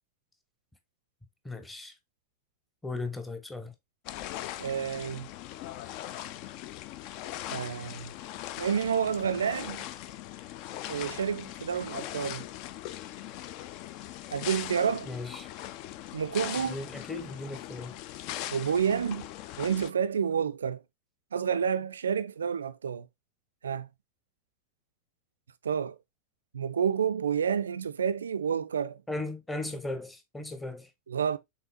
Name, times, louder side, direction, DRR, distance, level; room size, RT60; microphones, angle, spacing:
voice 1, 1.4-1.9 2.8-3.7 15.1-15.5 16.7-18.0 29.1-30.9, left 2 dB, 10° left, 0.9 m, -37 dB
sound 1, 4.1-19.9, left 13 dB, 45° left, 0.3 m, -40 dB
voice 2, 4.6-5.3 7.5-8.1 8.6-9.8 10.9-12.5 14.3-15.1 16.1-16.8 18.5-19.3 19.6-20.8 21.3-23.1 23.6-23.9 25.6-26.0 26.5-29.0 31.1-31.4, right 7 dB, 70° right, 0.3 m, -29 dB
5.6 x 3.6 x 2.6 m
figure-of-eight pair, 90°, 0 cm